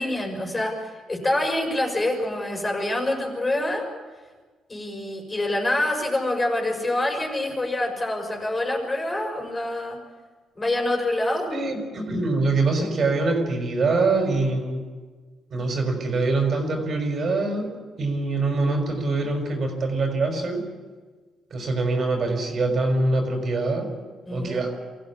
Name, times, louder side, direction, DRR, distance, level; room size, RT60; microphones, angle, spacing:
voice 1, 0.0-3.9 4.7-10.0 10.6-11.5 24.3-24.6, left 1 dB, 25° left, 2 dB, 6.0 m, -26 dB
voice 2, 11.5-14.9 15.5-20.6 21.5-23.9 24.3-24.7, right 3 dB, 50° right, 3 dB, 5.7 m, -24 dB
24.5 x 15.0 x 8.6 m, 1.4 s
cardioid pair, 90°, 0 cm